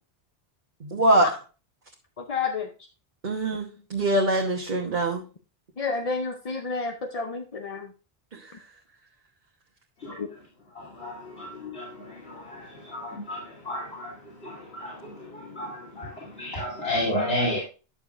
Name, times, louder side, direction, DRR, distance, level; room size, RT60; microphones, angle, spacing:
voice 1, 0.8-1.3 3.2-5.2 8.3-8.5, right 1 dB, 50° right, -3 dB, 1.3 m, -23 dB
voice 2, 2.2-2.7 5.8-7.9 10.2-10.3, left 4 dB, 40° left, 4 dB, 0.7 m, -30 dB
voice 3, 10.0-17.6, left 1 dB, 75° left, -6 dB, 3.2 m, -33 dB
10.5 x 6.8 x 2.5 m, 0.33 s
omnidirectional pair, 1.0 m